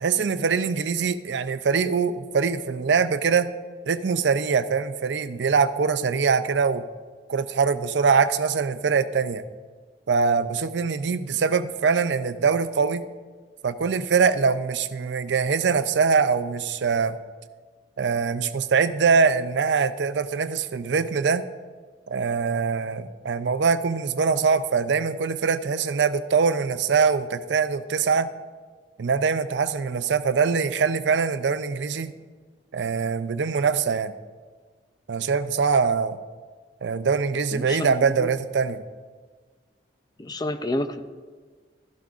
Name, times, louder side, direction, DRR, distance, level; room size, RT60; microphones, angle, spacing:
voice 1, 0.0-3.5 3.9-6.8 7.3-9.4 10.1-13.0 13.6-17.2 18.0-21.4 22.1-28.3 29.0-32.1 32.7-34.1 35.1-36.2 36.8-38.8, right 5 dB, 85° right, 12 dB, 0.5 m, -23 dB
voice 2, 37.5-37.9 38.2-38.3 40.2-41.0, left 1 dB, 25° left, 9 dB, 0.4 m, -29 dB
13.0 x 11.5 x 2.4 m, 1.5 s
head